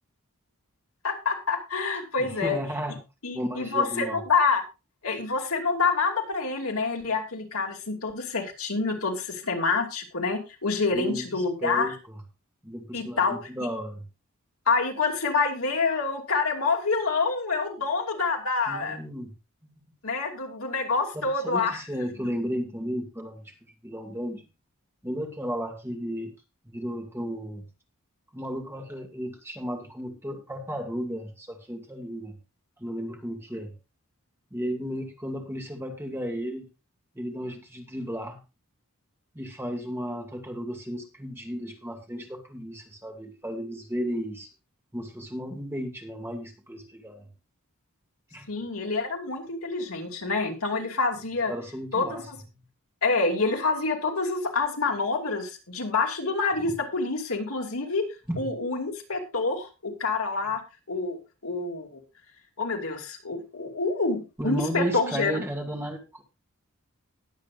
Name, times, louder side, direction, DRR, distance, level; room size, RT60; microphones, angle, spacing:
voice 1, 1.0-2.6 3.2-4.6 5.0-11.9 12.9-13.4 14.7-19.0 20.0-21.8 48.5-51.5 51.9-52.4 53.0-58.0 58.4-60.6 60.9-62.0 62.6-65.4, left 4 dB, 70° left, 2 dB, 2.6 m, -27 dB
voice 2, 2.2-3.0 3.3-4.2 10.9-12.2 12.6-14.0 18.7-19.3 19.6-19.8 21.1-23.5 23.8-24.4 25.0-26.3 26.6-27.6 28.3-32.4 32.8-33.7 34.5-36.7 37.1-38.4 39.3-44.5 44.9-47.3 48.3-48.5 51.5-52.3 52.5-52.6 56.7-56.8 58.3-58.5 64.4-66.2, equal, 10° right, 2 dB, 2.2 m, -34 dB
20.0 x 8.1 x 2.5 m, 0.28 s
head